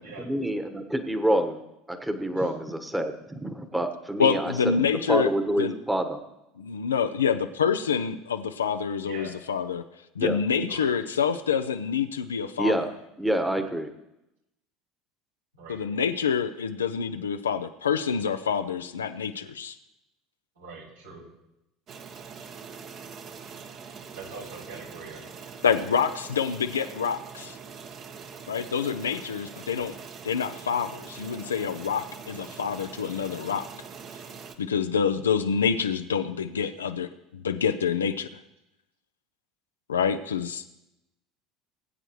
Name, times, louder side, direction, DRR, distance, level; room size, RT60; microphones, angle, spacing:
voice 1, 0.2-1.6 1.9-4.5 5.1-6.2 10.2-10.4 12.6-12.9 13.2-13.9, right 1 dB, 5° right, 7 dB, 1.3 m, -27 dB
voice 2, 4.2-5.3 5.6-5.7 6.6-9.8 10.2-12.7 15.7-19.8 25.6-27.6 28.5-30.0 30.2-33.7 34.6-37.1 37.4-38.4 39.9-40.8, left 6 dB, 80° left, 8 dB, 0.5 m, -27 dB
voice 3, 20.6-21.2 24.1-25.2, right 3 dB, 75° right, -5 dB, 5.3 m, -42 dB
sound 1, 21.9-34.5, right 6 dB, 45° right, 1.3 m, -43 dB
20.5 x 8.9 x 3.1 m, 0.91 s
figure-of-eight pair, 70°, 0 cm